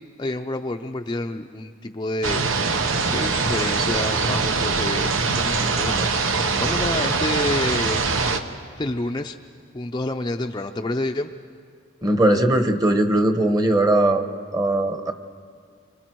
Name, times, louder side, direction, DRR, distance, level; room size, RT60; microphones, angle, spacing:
voice 1, 0.0-2.8 3.1-6.2 6.6-8.0 8.8-9.4 9.7-11.3, left 2 dB, 20° left, 5 dB, 0.5 m, -28 dB
sound 1, 2.2-8.4, right 4 dB, 80° right, 1.2 m, -23 dB
voice 2, 12.0-14.3 14.5-15.1, right 1 dB, 20° right, 7 dB, 1.1 m, -19 dB
30.0 x 25.0 x 4.6 m, 2.2 s
head